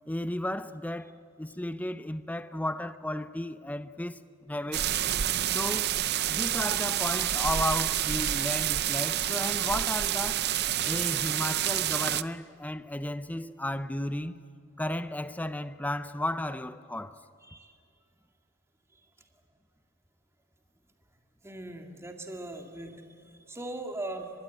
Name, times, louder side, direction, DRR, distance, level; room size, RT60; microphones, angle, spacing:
voice 1, 0.1-4.9 5.5-6.0 6.3-10.5 10.8-14.4 14.8-17.2, left 1 dB, 5° left, 0.6 m, -34 dB
sound 1, 4.7-12.2, right 12 dB, 50° right, 0.6 m, -28 dB
voice 2, 21.4-24.3, right 2 dB, 15° right, 1.9 m, -40 dB
24.5 x 21.0 x 9.1 m
head